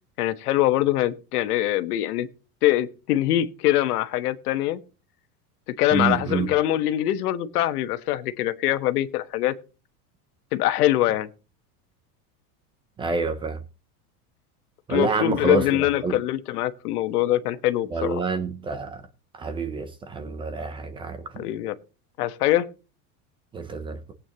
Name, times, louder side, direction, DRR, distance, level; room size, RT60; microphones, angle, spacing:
voice 1, 0.2-2.3 2.6-4.8 5.8-9.5 10.5-11.3 14.9-18.2 21.4-21.7 22.2-22.7, left 14 dB, 90° left, 1.3 m, -23 dB
voice 2, 5.9-6.5 13.0-13.6 14.9-15.7 16.0-16.2 17.9-19.0 19.4-21.4 23.5-24.1, right 4 dB, 10° right, 0.5 m, -27 dB
18.5 x 8.7 x 2.9 m
supercardioid pair, 165°, 44 cm